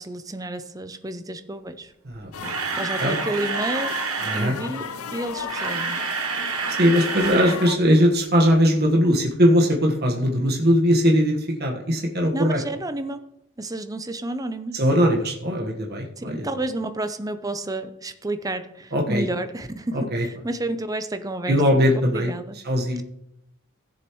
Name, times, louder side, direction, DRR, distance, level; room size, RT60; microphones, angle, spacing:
voice 1, 0.0-1.9 2.8-4.0 4.3-6.0 12.3-13.2 13.6-14.8 16.2-21.8 22.1-22.6, right 2 dB, 15° right, 0.6 m, -31 dB
voice 2, 2.0-2.6 3.0-3.2 4.2-4.5 6.8-12.6 14.7-16.5 18.9-19.2 20.1-20.2 21.5-22.3 22.6-23.0, equal, 45° right, 1.4 m, -20 dB
Camera, 2.1-4.5 5.3-7.6 7.8-8.0 8.5-8.6, right 6 dB, 80° right, 1.2 m, -28 dB
sound 1, 2.3-7.8, left 6 dB, 80° left, 0.7 m, -34 dB
16.5 x 7.2 x 3.1 m
head